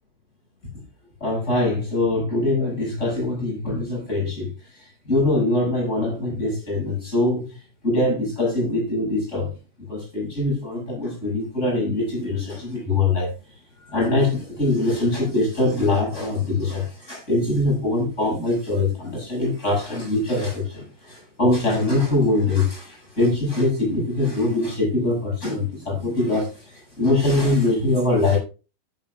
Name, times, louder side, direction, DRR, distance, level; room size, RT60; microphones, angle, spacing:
voice 1, 1.2-4.5 5.1-7.5 7.8-9.5 9.9-13.3 13.9-28.4, left 2 dB, 15° left, 7.1 m, -23 dB
14.5 x 11.0 x 2.4 m
omnidirectional pair, 5.1 m